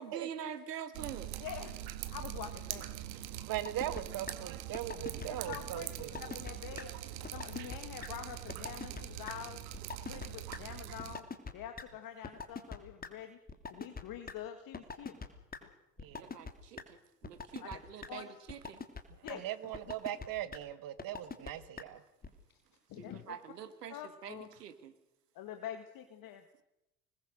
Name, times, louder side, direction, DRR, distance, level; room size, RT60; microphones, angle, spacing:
voice 1, 0.0-1.3 16.2-18.8 23.0-24.9, right 8 dB, 80° right, 11 dB, 1.6 m, -45 dB
Drip, 0.9-11.2, right 13 dB, 60° right, 1.7 m, -43 dB
voice 2, 1.4-1.7 2.1-3.0 5.2-7.0 7.3-9.6 10.1-13.4 13.7-15.2 15.6-15.7 17.6-17.7 18.1-18.3 19.2-19.4 22.9-23.4 23.9-24.5 25.4-26.4, left 10 dB, 45° left, 7 dB, 1.9 m, -46 dB
voice 3, 3.5-6.4 16.0-16.3 19.3-22.0, right 12 dB, 45° right, 14 dB, 1.7 m, -40 dB
sound 1, 3.7-4.0 4.3-4.4 4.7-5.3 5.5-5.6 6.0-6.5 6.8-6.9 7.2-7.8 8.0-8.1 8.5-9.0 9.3-9.4 9.7-10.3 10.5-10.6 11.0-11.5 11.8-11.9 12.2-13.1 13.5-14.3 14.7-15.3 15.5-15.6 16.0-16.5 16.8-16.9 17.2-17.8 18.0-18.1 18.5-19.0 19.3-19.4 19.7-20.3 20.5-20.6 21.0-21.5 21.8-21.9 22.2-22.3, left 5 dB, 20° left, 2.8 m, -41 dB
26.0 x 20.5 x 6.5 m, 0.92 s
figure-of-eight pair, 70°, 47 cm